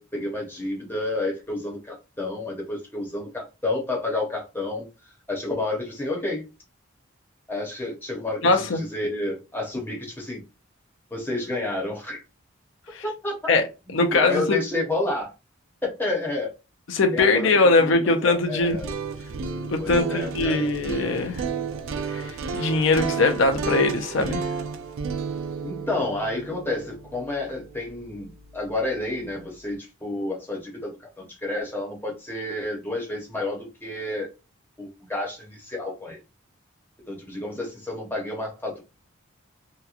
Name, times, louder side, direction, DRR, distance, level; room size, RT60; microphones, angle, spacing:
voice 1, 0.0-4.9 5.3-6.4 7.5-10.4 11.1-12.2 13.0-13.4 14.0-15.3 15.8-16.5 17.1-17.5 17.8-18.9 19.8-20.7 25.6-34.3 34.8-36.2 37.1-38.8, left 2 dB, 10° left, 0.7 m, -30 dB
voice 2, 8.4-8.8 12.9-13.0 13.5-13.6 13.9-14.6 16.9-18.8 19.7-21.5 22.1-24.4, left 3 dB, 65° left, 0.5 m, -21 dB
sound 1, 18.6-28.6, right 5 dB, 75° right, 0.4 m, -32 dB
2.8 x 2.2 x 2.4 m
head